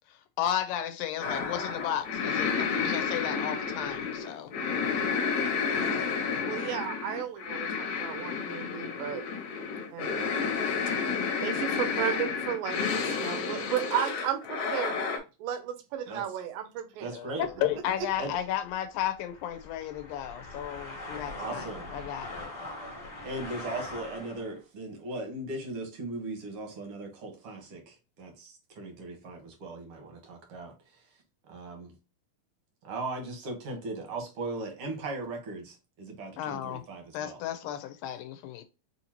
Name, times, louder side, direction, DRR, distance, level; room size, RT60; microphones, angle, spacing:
voice 1, 0.1-4.5 4.9-5.1 5.8-6.1 17.1-22.5 36.4-36.8 37.1-38.6, left 11 dB, 80° left, 2.2 m, -34 dB
sound 1, 1.2-15.2, left 5 dB, 65° left, 2.1 m, -31 dB
voice 2, 6.5-9.3 9.9-10.4 10.9-11.0 11.4-15.1 15.4-17.1, right 10 dB, 75° right, 2.3 m, -34 dB
voice 3, 17.0-17.4 18.2-18.4 21.4-21.9 23.2-31.0 31.5-31.9 32.8-37.4 37.6-37.7, right 2 dB, 60° right, 1.5 m, -38 dB
sound 2, 17.4-24.6, left 2 dB, 40° left, 1.2 m, -42 dB
6.4 x 2.7 x 2.9 m
omnidirectional pair, 4.2 m